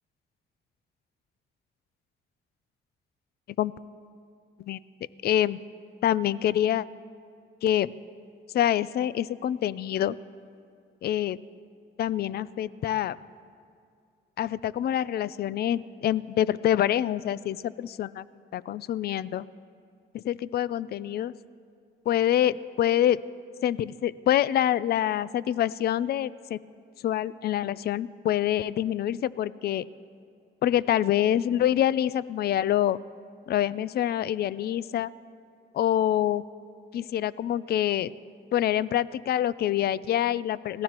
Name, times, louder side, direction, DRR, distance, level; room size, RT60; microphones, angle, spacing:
voice 1, 5.2-5.6 6.0-6.8 7.6-7.9 8.5-10.2 11.0-11.4 12.0-13.2 14.4-18.2 18.5-19.4 20.1-21.3 22.1-23.2 23.6-26.6 27.0-29.9 30.6-33.0 33.5-35.1 35.7-36.4 36.9-38.1 38.5-40.8, left 11 dB, 55° left, 18 dB, 0.4 m, -26 dB
26.0 x 17.5 x 2.9 m, 2.3 s
cardioid pair, 90°, 20 cm